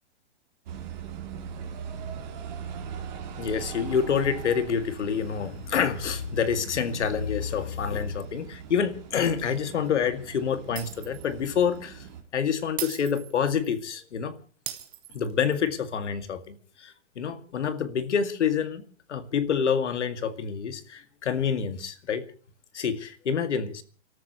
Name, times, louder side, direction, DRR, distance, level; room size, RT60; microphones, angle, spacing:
sound 1, 0.7-12.2, right 7 dB, 40° right, 4.0 m, -41 dB
voice 1, 3.4-12.0 12.3-14.4 15.1-18.8 19.1-22.2 22.7-23.8, left 7 dB, 75° left, 2.3 m, -27 dB
Shatter, 10.8-11.3 11.6-11.8 12.8-13.8 14.7-15.7, right 13 dB, 10° right, 0.9 m, -38 dB
29.5 x 13.5 x 3.1 m
hypercardioid pair, 175°, 36 cm